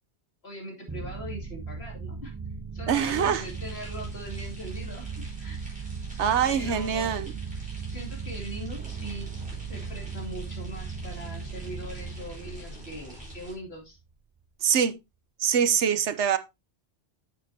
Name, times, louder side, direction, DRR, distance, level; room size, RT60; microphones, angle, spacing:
voice 1, 0.4-2.3 2.7-5.6 6.5-7.1 7.9-9.3 9.7-14.0, equal, 65° left, 3.1 m, -41 dB
sound 1, 0.9-13.8, right 5 dB, 25° right, 0.4 m, -37 dB
sound 2, 2.9-13.5, equal, 5° right, 4.4 m, -47 dB
voice 2, 2.9-3.4 6.2-7.3 14.6-14.9 15.4-16.4, right 8 dB, 85° right, 1.1 m, -24 dB
8.2 x 8.2 x 2.8 m
omnidirectional pair, 1.2 m